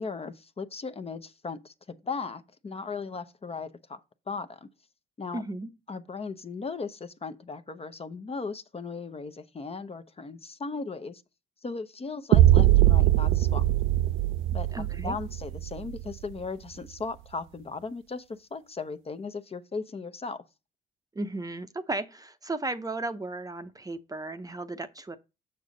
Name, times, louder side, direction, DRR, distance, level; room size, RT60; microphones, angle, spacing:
voice 1, 0.0-4.0 4.3-4.7 5.2-5.4 5.9-11.2 11.6-13.6 14.5-14.7 14.9-20.4, left 4 dB, 30° left, 0.7 m, -37 dB
voice 2, 5.3-5.7 14.7-15.2 21.2-25.2, right 2 dB, 20° right, 0.7 m, -35 dB
sound 1, 12.3-16.3, right 14 dB, 80° right, 0.5 m, -21 dB
6.8 x 6.4 x 3.9 m
cardioid pair, 90°, 20 cm